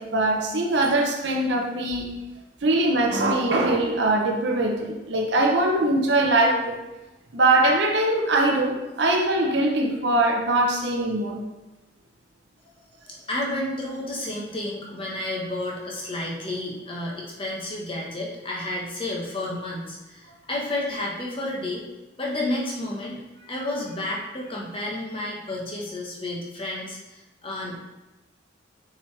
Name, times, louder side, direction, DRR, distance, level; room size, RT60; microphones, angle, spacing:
voice 1, 0.0-2.1 2.6-6.8 7.3-11.4, right 2 dB, 60° right, 1 dB, 0.8 m, -22 dB
voice 2, 13.0-21.8 22.2-27.7, left 1 dB, 25° left, -3 dB, 1.1 m, -31 dB
6.3 x 4.8 x 3.3 m, 1.0 s
head